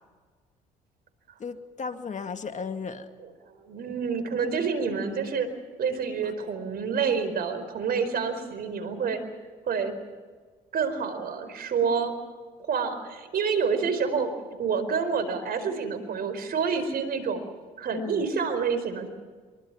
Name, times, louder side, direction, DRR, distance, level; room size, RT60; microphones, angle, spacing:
voice 1, 1.4-3.1 6.2-6.3 17.9-18.3, left 5 dB, 45° left, 7 dB, 2.2 m, -35 dB
voice 2, 3.4-5.5 5.8-9.2 9.7-9.9 10.7-12.1 12.7-14.3 14.6-17.4 17.8-19.1, right 5 dB, 60° right, 11 dB, 4.6 m, -28 dB
25.0 x 23.5 x 6.0 m, 1.5 s
supercardioid pair, 65°, 18 cm